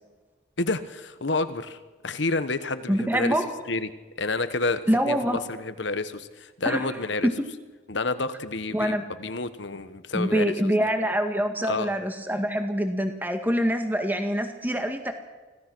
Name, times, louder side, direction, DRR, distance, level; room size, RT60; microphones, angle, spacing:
voice 1, 0.6-1.8 2.0-3.3 3.7-3.9 4.2-7.3 7.9-10.5 11.7-11.9, left 3 dB, 70° left, 12 dB, 1.2 m, -29 dB
voice 2, 2.9-3.5 4.9-5.4 6.6-7.3 8.7-9.1 10.1-15.1, equal, 10° right, 6 dB, 1.9 m, -25 dB
25.0 x 16.5 x 6.2 m, 1.2 s
head